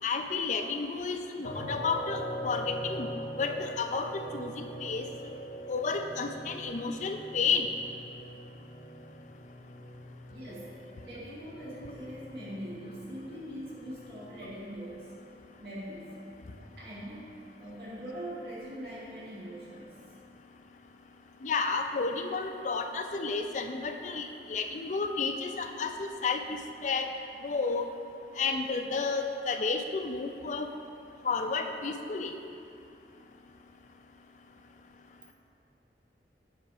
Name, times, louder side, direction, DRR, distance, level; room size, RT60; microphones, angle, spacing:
voice 1, 0.0-3.1 3.4-5.4 5.7-7.7 21.4-27.1 27.4-27.8 28.4-30.7 31.2-32.3, left 4 dB, 40° left, 5 dB, 0.4 m, -31 dB
sound 1, 1.4-14.4, equal, 70° left, 1.2 m, -42 dB
voice 2, 10.3-15.2 15.6-16.2 16.6-20.0, equal, 60° right, -8 dB, 1.9 m, -42 dB
8.1 x 5.0 x 4.8 m, 2.6 s
head